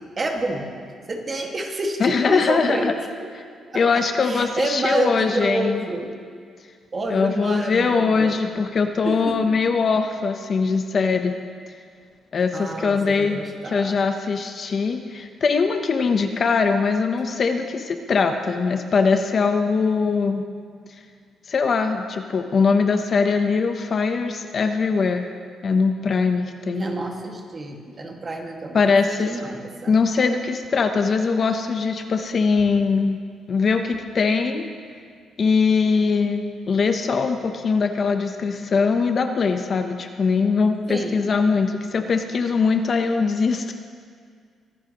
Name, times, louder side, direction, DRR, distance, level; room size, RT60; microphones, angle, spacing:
voice 1, 0.2-0.7 1.1-3.3 3.7-3.8 4.2-6.1 6.9-8.3 9.0-9.4 12.5-13.9 26.7-29.0 29.2-29.9 40.9-41.2, right 2 dB, 30° right, 1 dB, 1.8 m, -28 dB
voice 2, 2.0-2.9 3.7-5.8 7.1-11.3 12.3-20.5 21.5-25.3 25.6-26.8 28.7-29.4 29.9-33.2 33.5-34.7 35.4-43.7, left 5 dB, 45° left, 6 dB, 0.8 m, -21 dB
23.0 x 11.0 x 3.0 m, 2.1 s
cardioid pair, 110°, 0 cm